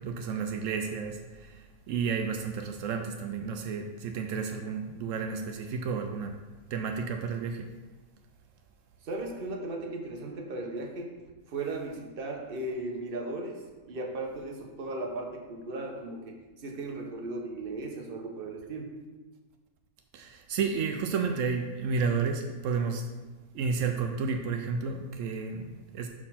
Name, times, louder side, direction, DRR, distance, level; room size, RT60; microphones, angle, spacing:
voice 1, 0.0-6.3 6.7-7.7 20.1-23.1 23.5-26.1, right 5 dB, 90° right, 5 dB, 0.6 m, -31 dB
voice 2, 9.0-11.1 11.5-18.9, right 2 dB, 45° right, 2 dB, 0.8 m, -36 dB
6.0 x 4.3 x 5.7 m, 1.2 s
omnidirectional pair, 1.9 m